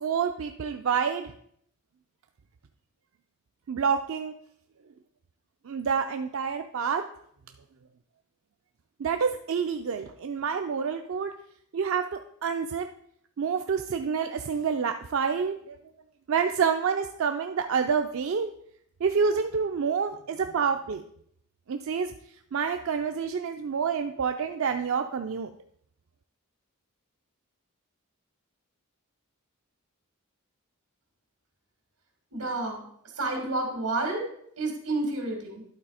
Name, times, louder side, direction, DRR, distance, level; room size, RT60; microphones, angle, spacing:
voice 1, 0.0-1.3 3.7-4.3 5.7-7.0 9.0-11.3 11.7-12.9 13.4-15.8 16.3-18.5 19.0-21.0 21.7-22.1 22.5-25.5, right 6 dB, 65° right, 6 dB, 0.4 m, -28 dB
voice 2, 32.3-32.8 33.2-34.2 34.6-35.6, right 2 dB, 90° right, 3 dB, 2.3 m, -29 dB
11.5 x 4.0 x 4.9 m, 0.69 s
head